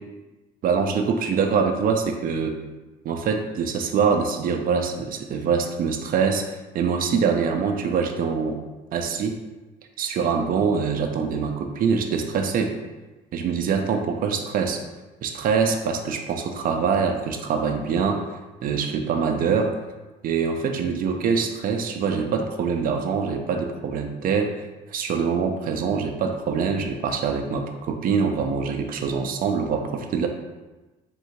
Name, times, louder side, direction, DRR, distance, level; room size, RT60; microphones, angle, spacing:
voice 1, 0.6-2.6 3.0-8.6 8.9-9.4 10.0-12.7 13.3-14.8 15.2-19.7 20.2-24.5 24.9-30.3, right 6 dB, 55° right, 4 dB, 0.5 m, -24 dB
3.7 x 2.7 x 4.4 m, 1.1 s
cardioid pair, 110°, 17 cm